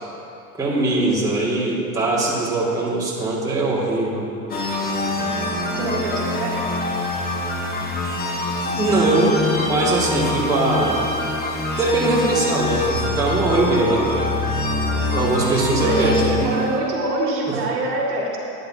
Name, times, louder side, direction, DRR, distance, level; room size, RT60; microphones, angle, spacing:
voice 1, 0.6-4.3 8.6-11.0 11.8-14.3 15.1-16.4 17.5-17.6, right 2 dB, 10° right, -7 dB, 2.2 m, -21 dB
sound 1, 4.5-16.8, left 2 dB, 20° left, 1.3 m, -25 dB
voice 2, 5.8-6.6 15.8-18.4, right 2 dB, 75° right, -3 dB, 2.3 m, -25 dB
12.0 x 9.8 x 2.8 m, 2.8 s
hypercardioid pair, 105°, 46 cm